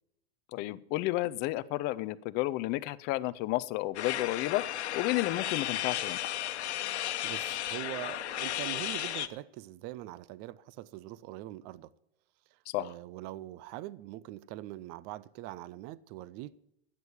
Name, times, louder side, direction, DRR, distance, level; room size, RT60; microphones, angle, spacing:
voice 1, 0.5-4.6 4.9-6.2 12.7-12.9, left 17 dB, 30° left, 0.5 m, -31 dB
sound 1, 3.9-9.3, left 12 dB, 85° left, 1.1 m, -34 dB
voice 2, 7.2-11.9 12.5-16.6, right 15 dB, 30° right, 0.4 m, -43 dB
12.5 x 8.3 x 7.0 m
supercardioid pair, 145°, 33 cm